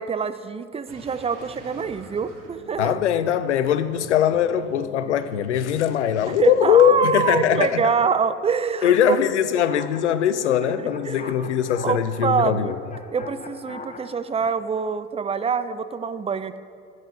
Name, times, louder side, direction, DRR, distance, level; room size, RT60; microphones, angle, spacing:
voice 1, 0.0-3.0 6.4-9.2 10.8-11.5 11.8-12.7 13.1-16.6, right 6 dB, 20° right, 0.5 m, -25 dB
sound 1, 0.9-7.4, right 2 dB, 60° right, 2.8 m, -45 dB
voice 2, 2.8-7.9 8.8-12.8, left 9 dB, 85° left, 0.5 m, -21 dB
sound 2, 9.5-14.6, left 4 dB, 25° left, 0.8 m, -42 dB
16.0 x 9.4 x 2.8 m
hypercardioid pair, 60°, 34 cm